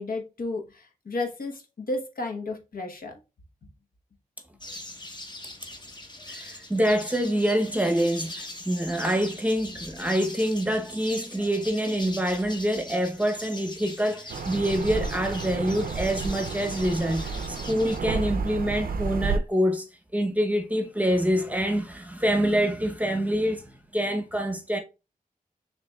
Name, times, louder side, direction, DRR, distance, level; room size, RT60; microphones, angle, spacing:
voice 1, 0.0-3.2, left 2 dB, 80° left, 1.0 m, -33 dB
sound 1, 4.6-18.0, left 1 dB, 30° left, 0.9 m, -41 dB
voice 2, 6.3-19.9 20.1-24.8, equal, 10° right, 0.7 m, -26 dB
sound 2, 14.3-19.4, right 4 dB, 80° right, 0.4 m, -31 dB
6.7 x 3.0 x 2.2 m
wide cardioid pair, 110°, 15 cm